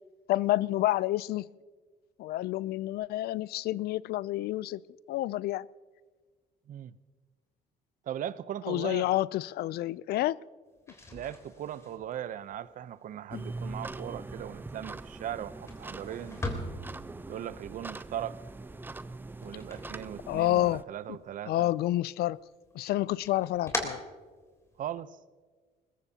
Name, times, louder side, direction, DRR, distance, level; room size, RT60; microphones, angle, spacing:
voice 1, 0.3-1.5 2.2-4.8 5.1-5.7 8.6-10.4 13.3-13.4 20.3-20.8 21.5-22.4 22.7-24.0, left 15 dB, 70° left, 0.4 m, -29 dB
voice 2, 8.1-9.1 11.1-16.4 17.3-18.4 19.4-21.7 24.8-25.2, right 10 dB, 55° right, 0.6 m, -39 dB
sound 1, 10.7-20.8 21.1-21.9 22.3-24.9, left 2 dB, 15° left, 3.4 m, -42 dB
sound 2, 13.3-20.8, right 2 dB, 10° right, 0.4 m, -42 dB
21.5 x 20.5 x 2.8 m
cardioid pair, 110°, 17 cm